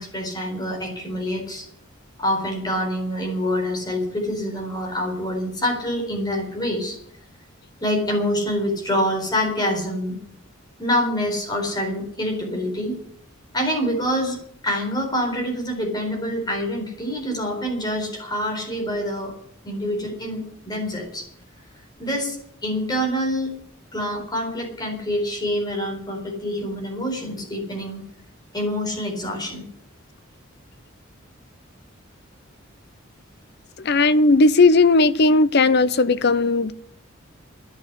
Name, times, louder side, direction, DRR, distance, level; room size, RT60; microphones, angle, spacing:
voice 1, 0.0-1.7 2.2-7.0 7.8-10.2 10.8-13.0 13.5-14.4 14.6-19.3 19.6-21.3 22.0-22.4 22.6-23.5 23.9-28.0 28.5-29.6, equal, 20° left, 4.3 m, -26 dB
voice 2, 33.8-36.7, left 3 dB, 50° left, 0.7 m, -16 dB
11.0 x 10.0 x 9.8 m
head